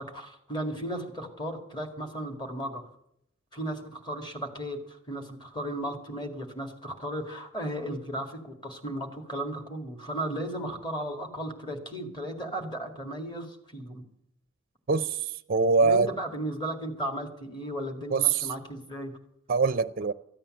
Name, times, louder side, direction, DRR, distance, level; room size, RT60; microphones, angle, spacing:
voice 1, 0.0-2.9 3.5-14.0 15.8-19.1, right 1 dB, 20° left, 2.1 m, -35 dB
voice 2, 14.9-16.1 18.1-18.5 19.5-20.1, right 4 dB, 45° right, 0.4 m, -23 dB
14.0 x 8.8 x 7.8 m
head